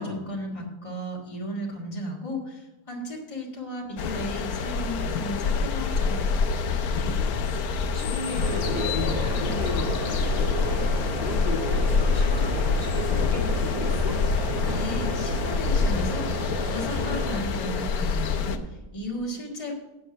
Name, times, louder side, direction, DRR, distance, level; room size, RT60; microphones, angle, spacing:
voice 1, 0.0-6.3 14.7-19.7, equal, 20° left, -4 dB, 2.1 m, -35 dB
sound 1, 4.0-18.6, left 5 dB, 80° left, 1.3 m, -26 dB
voice 2, 6.9-7.6 7.9-10.8 11.2-14.2, left 3 dB, 35° left, -2 dB, 2.2 m, -35 dB
sound 2, 8.4-17.4, equal, 70° right, 2.6 m, -31 dB
8.3 x 7.7 x 6.1 m, 1.1 s
omnidirectional pair, 1.6 m